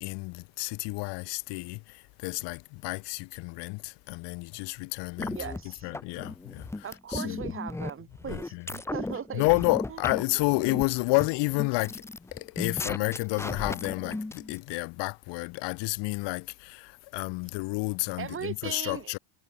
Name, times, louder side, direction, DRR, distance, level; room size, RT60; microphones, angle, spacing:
voice 1, 0.0-7.5 8.3-8.7 9.3-12.1 12.3-19.2, left 26 dB, 70° left, 1.3 m, -30 dB
sound 1, 5.2-14.5, left 2 dB, 5° left, 0.9 m, -36 dB
voice 2, 5.3-5.9 6.8-9.4 18.2-19.1, right 8 dB, 30° right, 2.6 m, -38 dB
cardioid pair, 150°, 44 cm